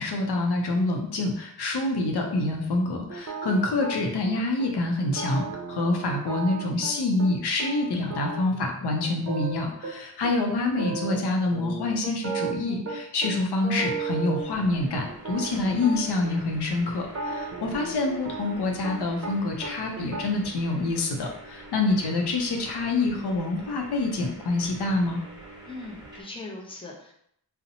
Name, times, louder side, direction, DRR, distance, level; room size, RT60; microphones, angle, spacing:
voice 1, 0.0-25.2, left 2 dB, 85° left, 2 dB, 0.5 m, -26 dB
sound 1, 2.2-4.3 4.6-4.7 5.0-7.3 7.6-9.9 10.2-10.3 10.6-11.2 11.5-13.3 13.6-16.3 17.0-19.3 19.6-20.2, right 4 dB, 40° right, 0.5 m, -35 dB
sound 2, 14.4-26.2, right 2 dB, 10° right, 1.0 m, -46 dB
voice 2, 25.7-27.1, left 2 dB, 15° left, -1 dB, 0.6 m, -40 dB
2.6 x 2.0 x 2.7 m, 0.69 s
cardioid pair, 50°, 38 cm